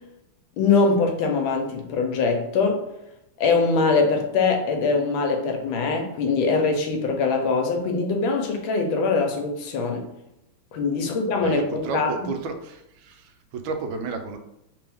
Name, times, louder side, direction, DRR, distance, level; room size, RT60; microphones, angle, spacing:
voice 1, 0.6-2.9 3.4-10.0 10.7-12.3, left 4 dB, 75° left, 4 dB, 1.4 m, -22 dB
voice 2, 11.4-14.4, right 4 dB, 80° right, 6 dB, 1.3 m, -32 dB
3.4 x 3.3 x 3.5 m, 0.86 s
omnidirectional pair, 2.2 m